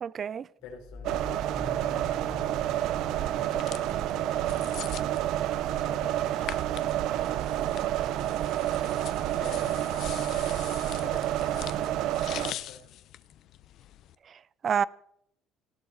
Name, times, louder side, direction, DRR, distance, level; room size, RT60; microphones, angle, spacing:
voice 1, 0.0-0.5 14.3-14.8, right 7 dB, 30° right, 0.5 m, -29 dB
voice 2, 0.6-2.6 3.0-5.0 5.6-7.0 7.3-8.5 9.4-12.0 12.3-12.8, left 6 dB, 90° left, 4.1 m, -49 dB
sound 1, 0.6-10.0, left 2 dB, 5° right, 2.9 m, -48 dB
sound 2, 1.0-12.5, right 12 dB, 65° right, 0.8 m, -29 dB
sound 3, 3.4-14.1, left 12 dB, 55° left, 0.8 m, -44 dB
18.5 x 17.5 x 4.1 m
cardioid pair, 155°, 0 cm